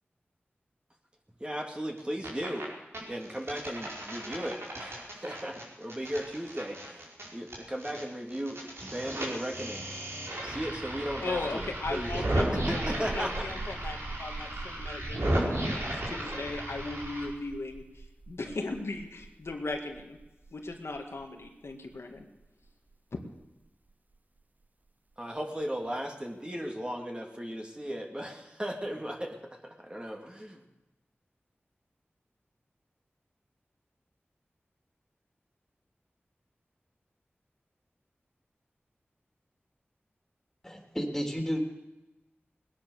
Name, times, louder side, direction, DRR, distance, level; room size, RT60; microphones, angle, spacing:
voice 1, 1.4-2.7 3.1-7.1 7.3-9.9 10.4-12.2 12.7-13.3 25.2-29.4 29.6-30.6, equal, 20° right, 1 dB, 2.8 m, -36 dB
sound 1, 2.0-2.6 2.9-8.0 8.3-17.2, right 1 dB, 75° right, 4.8 m, -34 dB
sound 2, 11.0-24.4, right 3 dB, 40° right, 0.8 m, -43 dB
voice 2, 11.2-20.2 20.5-22.2 23.1-23.2, left 3 dB, 80° left, 2 dB, 2.0 m, -37 dB
voice 3, 40.6-41.6, equal, 5° left, 2 dB, 3.6 m, -32 dB
20.0 x 9.9 x 6.7 m, 1.0 s
wide cardioid pair, 45°, 4 cm